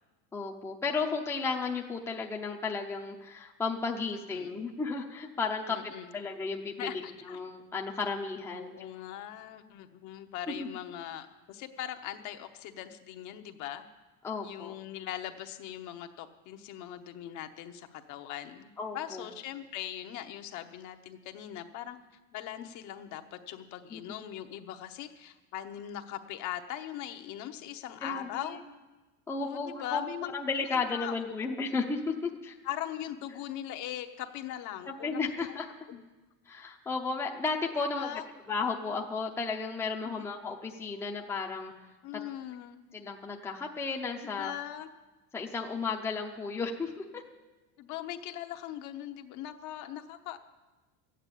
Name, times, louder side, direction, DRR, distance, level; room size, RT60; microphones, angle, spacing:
voice 1, 0.3-7.0 7.3-8.8 10.6-10.7 14.2-14.7 18.8-19.3 23.9-24.0 28.0-28.6 29.3-30.0 30.3-32.5 34.8-35.7 36.5-38.1 38.5-41.7 42.9-44.5 45.3-47.2, left 4 dB, 5° left, 1 dB, 0.7 m, -34 dB
voice 2, 5.7-6.1 6.8-7.4 8.5-13.8 14.4-22.0 22.3-28.6 29.4-30.3 30.9-31.3 32.6-35.6 35.9-36.0 38.0-38.2 40.0-40.2 42.0-42.8 44.2-44.9 47.8-50.4, left 11 dB, 45° left, 7 dB, 0.9 m, -40 dB
13.0 x 8.9 x 8.4 m, 1.2 s
cardioid pair, 160°, 41 cm